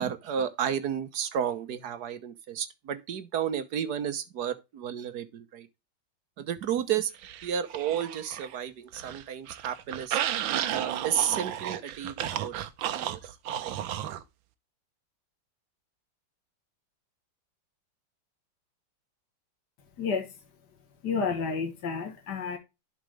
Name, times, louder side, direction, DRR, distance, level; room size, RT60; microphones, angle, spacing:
voice 1, 0.0-5.7 6.4-7.1 7.4-10.2 10.7-12.5 12.9-13.2 13.6-13.7, right 9 dB, 60° right, 1.5 m, -32 dB
sound 1, 7.2-8.6 8.9-14.2, right 11 dB, 85° right, 1.5 m, -33 dB
voice 2, 20.0-20.3 21.0-22.6, left 5 dB, 60° left, 2.1 m, -30 dB
11.5 x 5.2 x 3.3 m
omnidirectional pair, 2.1 m